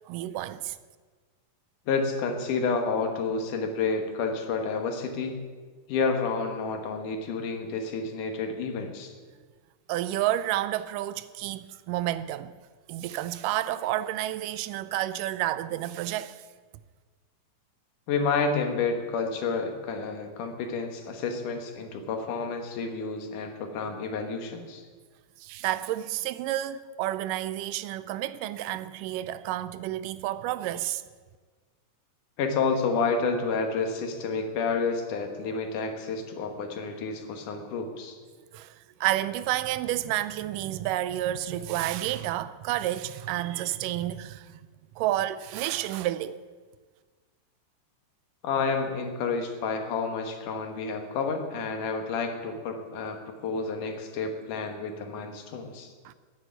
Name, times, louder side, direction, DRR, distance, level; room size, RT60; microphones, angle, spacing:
voice 1, 0.1-0.8 9.9-12.5 12.9-16.4 25.4-31.0 38.5-44.6 45.0-46.4 56.1-56.2, right 14 dB, 85° right, 2.2 m, -30 dB
voice 2, 1.9-5.4 5.9-9.1 18.1-24.8 32.4-38.2 48.4-55.9, left 4 dB, 75° left, 2.8 m, -30 dB
10.5 x 9.5 x 9.1 m
omnidirectional pair, 3.8 m